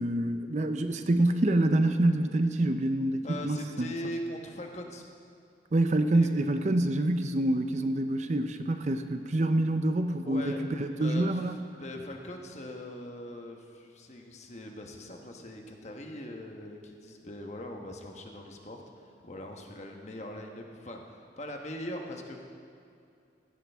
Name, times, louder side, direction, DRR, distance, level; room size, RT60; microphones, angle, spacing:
voice 1, 0.0-3.9 5.7-11.6, right 1 dB, 40° right, 8 dB, 0.5 m, -26 dB
voice 2, 3.2-5.0 6.1-6.3 10.2-10.6 10.9-11.3 11.8-22.4, left 1 dB, 40° left, 2 dB, 1.1 m, -41 dB
16.0 x 12.0 x 3.5 m, 2.5 s
head